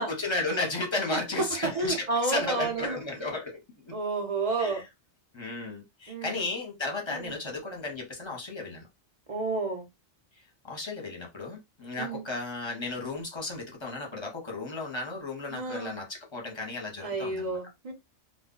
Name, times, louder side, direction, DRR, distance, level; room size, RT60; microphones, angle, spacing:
voice 1, 0.0-3.9 4.6-4.8 5.3-8.9 10.6-17.5, left 3 dB, 25° left, 0.8 m, -34 dB
voice 2, 1.6-3.0 3.9-4.8 6.1-6.4 7.1-7.3 9.3-9.8 12.0-12.2 15.5-15.9 17.0-17.9, right 3 dB, 40° right, 0.6 m, -30 dB
2.3 x 2.1 x 3.7 m
omnidirectional pair, 1.2 m